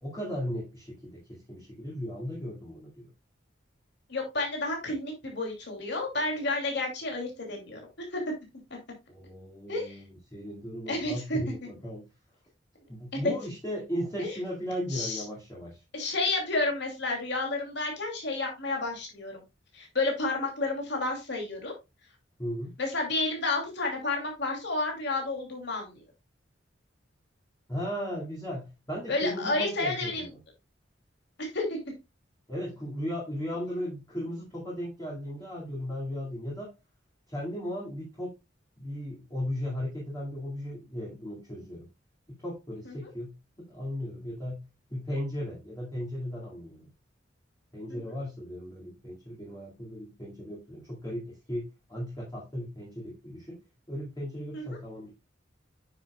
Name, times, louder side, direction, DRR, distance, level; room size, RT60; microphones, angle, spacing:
voice 1, 0.0-3.1 9.1-12.1 12.9-15.8 22.4-22.7 27.7-30.4 32.5-36.7 37.3-38.3 38.8-41.9 42.3-44.6 44.9-46.9 47.7-53.6 53.9-55.1, equal, 20° left, -5 dB, 2.2 m, -36 dB
voice 2, 4.1-7.8 8.1-8.2 9.7-10.0 10.9-11.4 13.2-13.3 14.2-14.4 14.9-15.2 15.9-19.4 19.7-21.7 22.8-26.0 29.1-30.3 31.4-31.8 42.8-43.1 47.9-48.1 54.5-54.8, left 2 dB, 65° left, 1 dB, 2.7 m, -31 dB
9.3 x 6.7 x 2.3 m, 0.23 s
head